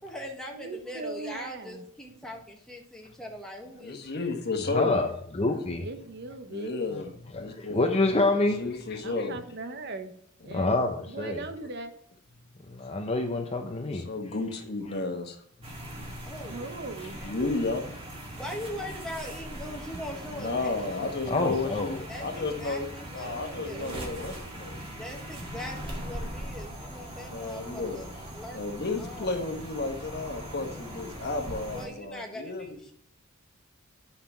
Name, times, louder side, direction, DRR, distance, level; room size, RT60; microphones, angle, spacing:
voice 1, 0.0-4.1 16.3-16.7 18.3-21.0 22.1-24.1 24.9-28.6 29.0-29.5 31.7-32.9, left 1 dB, 5° left, 1.5 m, -41 dB
voice 2, 0.5-1.8 5.8-6.7 9.0-10.1 10.4-10.7 11.1-11.9 16.4-17.2 23.2-24.1, right 3 dB, 55° right, 0.9 m, -39 dB
voice 3, 3.8-5.0 5.5-5.6 6.5-7.8 8.6-9.4 13.9-15.4 17.2-18.0 20.3-24.8 27.3-28.0 28.5-32.7, left 3 dB, 50° left, 1.3 m, -32 dB
voice 4, 4.7-5.9 6.9-7.0 7.3-8.6 10.5-11.4 12.7-14.1 21.3-22.0, left 2 dB, 30° left, 0.7 m, -27 dB
sound 1, 15.6-31.9, right 1 dB, 25° right, 1.9 m, -40 dB
9.3 x 5.7 x 4.4 m
head